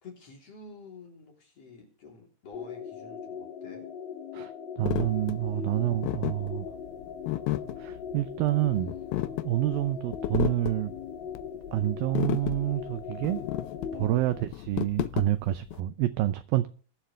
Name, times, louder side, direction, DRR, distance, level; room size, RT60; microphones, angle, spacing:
voice 1, 0.0-3.8 5.5-5.9 11.7-11.9 13.9-14.2, left 4 dB, 40° left, 4.1 m, -49 dB
sound 1, 2.5-14.4, left 7 dB, 65° left, 4.2 m, -40 dB
voice 2, 4.3-6.7 7.8-8.9 9.4-10.9 11.7-13.4 13.9-16.7, right 14 dB, 80° right, 2.2 m, -28 dB
sound 2, 4.9-15.8, left 15 dB, 80° left, 2.2 m, -33 dB
22.0 x 7.6 x 3.3 m
omnidirectional pair, 4.7 m